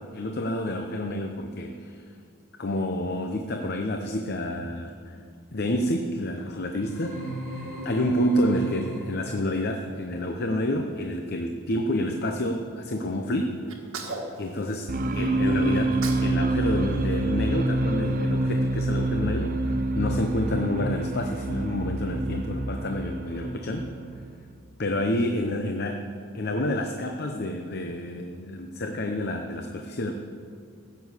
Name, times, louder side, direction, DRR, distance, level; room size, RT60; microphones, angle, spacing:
voice 1, 0.0-2.0 2.6-5.2 5.5-7.2 7.8-13.6 14.4-23.9 24.8-26.0 26.3-30.1, left 1 dB, 50° left, 4 dB, 0.7 m, -29 dB
sound 1, 6.8-9.4, right 1 dB, 70° left, 4.2 m, -36 dB
Sneeze, 13.7-15.3 15.7-16.3 16.6-18.1, right 3 dB, 70° right, 1.7 m, -39 dB
sound 2, 14.9-24.5, right 2 dB, 40° right, 0.7 m, -27 dB
15.5 x 6.9 x 8.3 m, 2.3 s
head